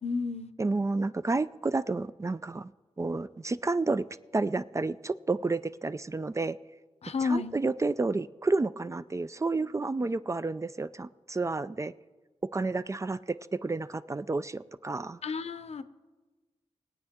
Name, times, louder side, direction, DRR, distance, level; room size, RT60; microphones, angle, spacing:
voice 1, 0.0-0.5 7.0-7.5 15.2-15.8, left 4 dB, 65° left, 11 dB, 0.7 m, -31 dB
voice 2, 0.6-2.7 3.0-4.0 4.3-6.6 7.2-11.9 12.5-15.2, right 3 dB, 25° right, 14 dB, 0.3 m, -30 dB
20.5 x 9.0 x 3.6 m, 1.2 s
wide cardioid pair, 90°, 11 cm